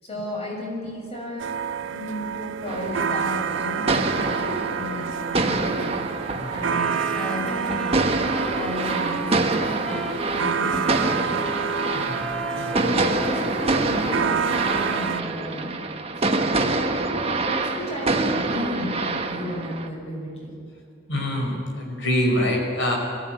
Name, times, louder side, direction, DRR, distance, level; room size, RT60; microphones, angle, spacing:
voice 1, 0.0-6.0 6.5-8.2 8.5-11.5 12.6-15.8 16.2-20.5, equal, 35° left, -1 dB, 6.5 m, -33 dB
sound 1, 1.4-15.2, right 7 dB, 85° right, 0.5 m, -29 dB
sound 2, 2.7-19.9, right 3 dB, 30° right, 1.3 m, -26 dB
Wind instrument woodwind instrument, 6.7-15.7, left 1 dB, 5° left, 1.1 m, -36 dB
voice 2, 11.9-13.1 21.1-23.0, left 1 dB, 75° left, 1 dB, 5.5 m, -26 dB
22.0 x 16.0 x 9.5 m, 2.5 s
head